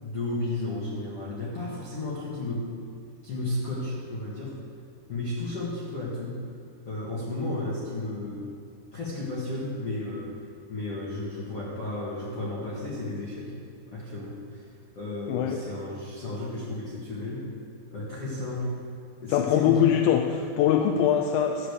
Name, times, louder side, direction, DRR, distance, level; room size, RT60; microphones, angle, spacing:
voice 1, 0.0-2.7 3.2-4.6 5.1-6.4 6.8-8.5 8.9-10.4 10.7-13.5 13.9-14.7 15.0-17.5 17.9-18.7 19.2-19.9, left 2 dB, 50° left, -7 dB, 1.8 m, -33 dB
voice 2, 19.3-21.7, left 9 dB, 90° left, 3 dB, 3.0 m, -22 dB
13.0 x 5.1 x 8.1 m, 2.3 s
omnidirectional pair, 5.3 m